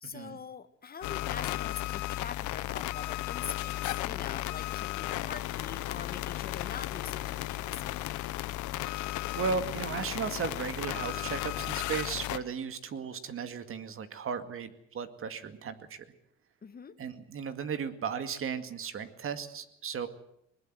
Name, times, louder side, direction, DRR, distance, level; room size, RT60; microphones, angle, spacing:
voice 1, 0.0-8.0 16.6-17.0, left 6 dB, 30° left, 12 dB, 1.6 m, -44 dB
sound 1, 1.0-12.4, left 16 dB, 80° left, 1.1 m, -35 dB
voice 2, 9.4-16.0 17.0-20.1, right 6 dB, 45° right, 9 dB, 2.2 m, -35 dB
20.5 x 20.0 x 7.7 m, 0.76 s
cardioid pair, 105°, 30 cm